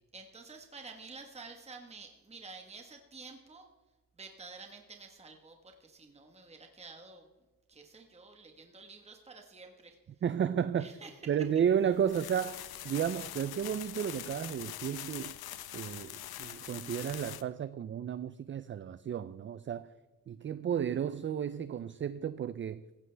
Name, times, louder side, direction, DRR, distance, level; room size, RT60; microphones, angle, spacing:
voice 1, 0.1-3.7 4.2-7.3 7.7-10.0 10.8-11.2, right 4 dB, 15° right, 1.3 m, -50 dB
voice 2, 10.2-10.9 11.3-15.4 15.7-19.9 20.3-22.8, right 8 dB, 35° right, 0.4 m, -33 dB
sound 1, 11.6-17.4, left 12 dB, 90° left, 0.8 m, -44 dB
16.5 x 15.5 x 3.4 m
cardioid pair, 130°, 36 cm